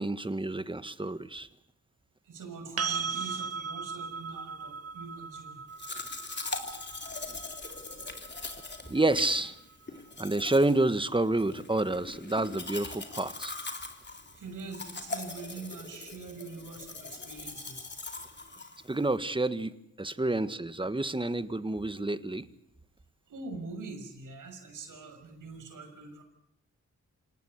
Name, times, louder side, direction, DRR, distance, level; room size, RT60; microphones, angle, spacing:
voice 1, 0.0-1.5 8.9-9.5 10.2-13.5 18.9-22.5, right 2 dB, 15° right, 12 dB, 1.6 m, -29 dB
voice 2, 2.2-5.6 5.9-6.0 6.9-7.7 14.1-17.9 20.2-20.4 23.3-26.2, right 4 dB, 85° right, 6 dB, 6.4 m, -44 dB
sound 1, 2.8-10.6 13.4-13.5, right 6 dB, 50° right, 1.1 m, -39 dB
Domestic sounds home sounds, 5.8-19.2, left 3 dB, 35° left, 3.5 m, -41 dB
27.5 x 18.5 x 8.1 m, 0.78 s
cardioid pair, 65°, 31 cm